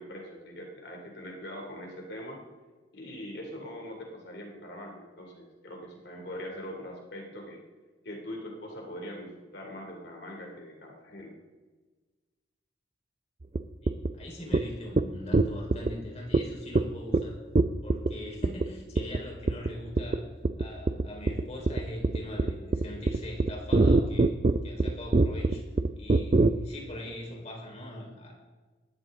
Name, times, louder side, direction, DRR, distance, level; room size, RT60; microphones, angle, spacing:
voice 1, 0.0-2.4 2.9-7.6 8.0-11.3, equal, 60° left, 1 dB, 2.7 m, -42 dB
sound 1, 13.6-13.7 13.9-14.1 14.5-14.6 15.0-15.1 15.3-15.9 16.3-16.4 16.8-16.9 17.1-17.2 17.6-18.1 18.4-18.7 19.0-19.2 19.5-19.7 20.0-20.2 20.4-26.5, right 2 dB, 35° right, 0.5 m, -23 dB
voice 2, 13.8-17.4 17.8-20.2 20.6-24.3 24.6-25.6 26.0-28.4, left 1 dB, 35° left, -1 dB, 4.2 m, -41 dB
19.5 x 14.0 x 3.7 m, 1.3 s
head